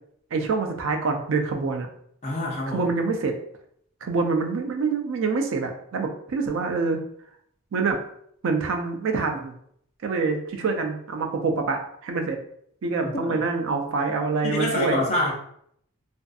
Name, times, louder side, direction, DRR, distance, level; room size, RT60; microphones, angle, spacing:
voice 1, 0.3-1.9 2.7-3.3 4.0-7.0 7.7-8.0 8.4-9.6 10.0-12.4 12.8-15.0, right 4 dB, 60° right, 4 dB, 0.4 m, -26 dB
voice 2, 2.2-2.9 13.0-13.5 14.4-15.3, left 1 dB, 30° left, -4 dB, 0.5 m, -26 dB
2.5 x 2.5 x 2.3 m, 0.68 s
head